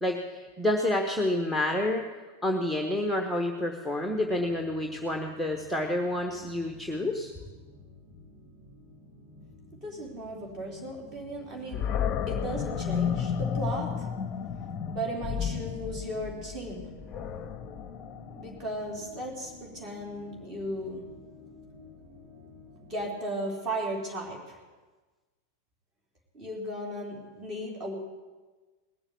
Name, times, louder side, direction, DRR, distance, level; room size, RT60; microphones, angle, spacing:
voice 1, 0.0-2.0 2.4-7.3, left 1 dB, 5° right, 2 dB, 1.1 m, -29 dB
sound 1, 4.1-23.1, left 2 dB, 45° right, 3.2 m, -51 dB
voice 2, 9.8-11.9 12.3-14.1 14.9-16.9 18.3-21.0 22.9-24.6 26.3-27.9, right 1 dB, 25° right, 0 dB, 3.6 m, -36 dB
Animal, 11.7-18.8, left 8 dB, 30° left, 0.8 m, -32 dB
19.5 x 7.1 x 8.4 m, 1.3 s
figure-of-eight pair, 90°, 0 cm